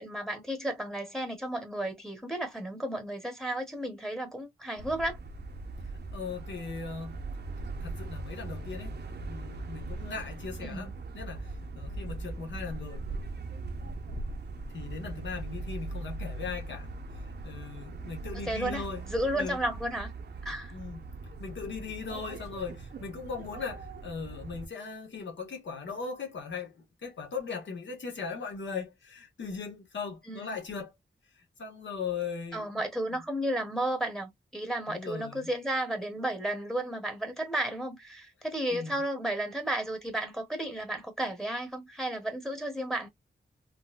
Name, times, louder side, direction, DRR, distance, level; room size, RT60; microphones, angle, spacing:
voice 1, 0.0-5.2 10.6-10.9 18.5-18.8 19.1-20.1 20.4-20.7 30.3-30.6 32.5-43.1, right 1 dB, ahead, 0.9 m, -33 dB
sound 1, 4.8-24.7, right 3 dB, 65° right, 0.6 m, -40 dB
voice 2, 6.1-7.2 7.8-8.9 9.2-13.1 14.7-16.9 17.4-19.1 19.4-19.6 20.7-21.1 21.4-30.9 31.6-32.8 34.9-35.5 38.7-39.0, left 5 dB, 85° left, 1.1 m, -39 dB
3.8 x 2.1 x 2.3 m
wide cardioid pair, 115°, 19 cm